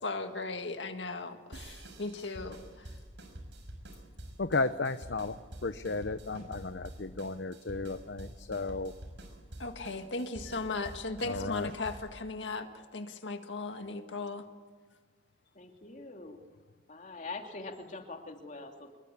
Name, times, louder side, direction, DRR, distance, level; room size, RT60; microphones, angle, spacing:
voice 1, 0.0-3.0 9.6-14.5, left 3 dB, 85° left, 6 dB, 1.9 m, -37 dB
sound 1, 1.5-12.2, right 1 dB, 75° right, 5.8 m, -47 dB
voice 2, 4.4-8.9 10.5-10.7 11.2-11.7, left 3 dB, 70° left, 10 dB, 0.9 m, -34 dB
voice 3, 15.5-16.4 16.9-19.0, left 3 dB, 45° left, 3 dB, 2.9 m, -43 dB
25.5 x 22.5 x 8.5 m, 1.5 s
head